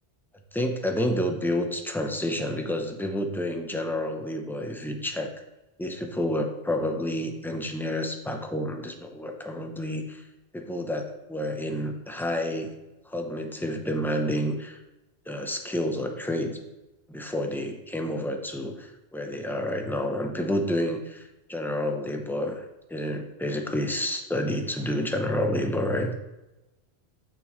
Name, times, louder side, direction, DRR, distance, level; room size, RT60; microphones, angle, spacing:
voice 1, 0.5-5.3 5.8-10.3 10.5-12.7 13.1-14.8 15.3-16.6 17.1-22.6 22.9-26.1, left 1 dB, 5° left, 3 dB, 0.4 m, -29 dB
7.0 x 6.7 x 3.1 m, 1.0 s
omnidirectional pair, 1.1 m